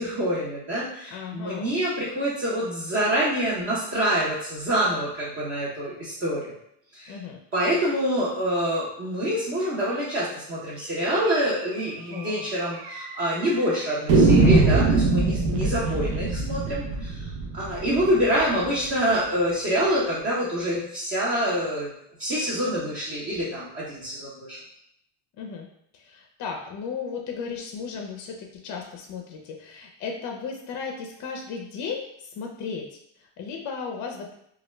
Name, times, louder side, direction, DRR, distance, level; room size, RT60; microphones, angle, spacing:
voice 1, 0.0-6.5 6.9-7.1 7.5-17.3 17.5-21.9 22.2-24.6, equal, 30° right, -7 dB, 0.7 m, -26 dB
voice 2, 1.1-1.7 7.1-7.4 12.1-12.5 25.4-25.7 25.9-34.3, left 5 dB, 45° left, 2 dB, 0.4 m, -35 dB
sound 1, 11.3-11.4 11.7-11.8 12.1-12.2 12.9-13.4 14.1-18.9, right 3 dB, 65° right, 0.7 m, -22 dB
2.3 x 2.1 x 3.1 m, 0.72 s
cardioid pair, 115°, 43 cm